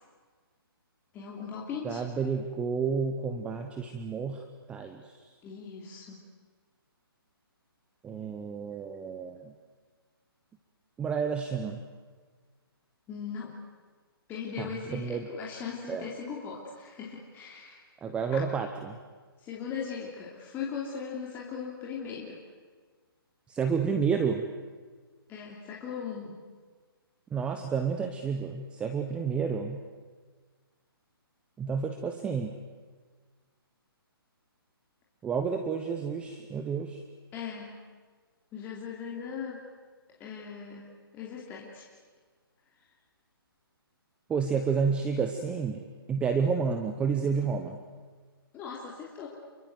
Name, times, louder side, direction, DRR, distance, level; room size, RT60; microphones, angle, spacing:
voice 1, 1.1-2.0 5.4-6.2 13.1-13.6 14.3-17.8 18.3-18.4 19.4-22.4 25.3-26.4 37.3-37.7 38.5-39.6 40.2-40.9 41.1-41.8 48.5-49.3, left 6 dB, 15° left, -3 dB, 3.0 m, -39 dB
voice 2, 1.8-5.2 8.0-9.5 11.0-11.8 14.6-15.3 15.9-16.1 18.0-19.0 23.5-24.5 27.3-29.8 31.6-32.6 35.2-37.0 44.3-45.8 46.1-47.8, right 6 dB, 10° right, 6 dB, 0.9 m, -30 dB
29.0 x 23.5 x 7.9 m, 1.5 s
hypercardioid pair, 160°, 13 cm